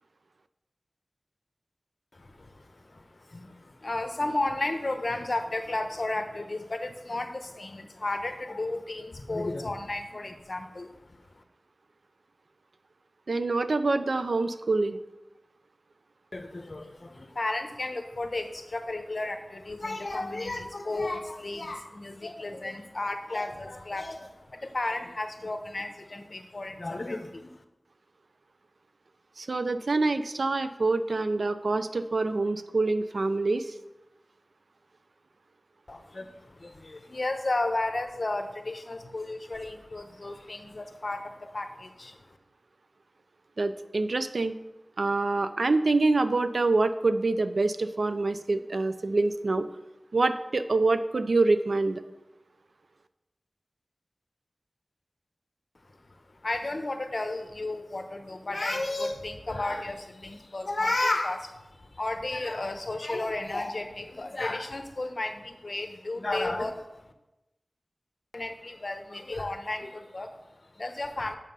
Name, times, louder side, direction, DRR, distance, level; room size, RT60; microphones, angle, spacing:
voice 1, 2.1-11.4 16.3-27.6 35.9-42.4 55.8-67.1 68.3-71.4, left 2 dB, 55° left, 7 dB, 0.9 m, -33 dB
voice 2, 13.3-15.0 29.4-33.7 43.6-44.5 45.0-49.7 50.1-52.0, right 3 dB, 80° right, 11 dB, 0.5 m, -26 dB
7.4 x 6.6 x 5.5 m, 0.98 s
wide cardioid pair, 70°, 0 cm